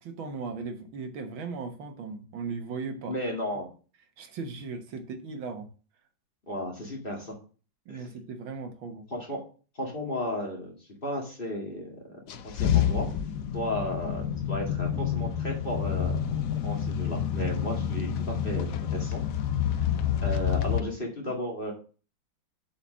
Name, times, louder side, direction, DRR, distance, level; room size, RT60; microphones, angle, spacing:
voice 1, 0.0-3.1 4.2-5.7 7.9-9.1, right 4 dB, 80° right, 6 dB, 2.0 m, -37 dB
voice 2, 3.1-3.7 6.5-7.4 7.9-8.1 9.1-9.4 9.7-11.9 12.4-13.1 13.5-16.1 16.6-19.2 20.2-21.7, equal, 25° left, -1 dB, 2.2 m, -34 dB
sound 1, 12.3-20.8, left 9 dB, 70° left, 0.8 m, -28 dB
7.3 x 5.0 x 6.1 m, 0.37 s
omnidirectional pair, 2.1 m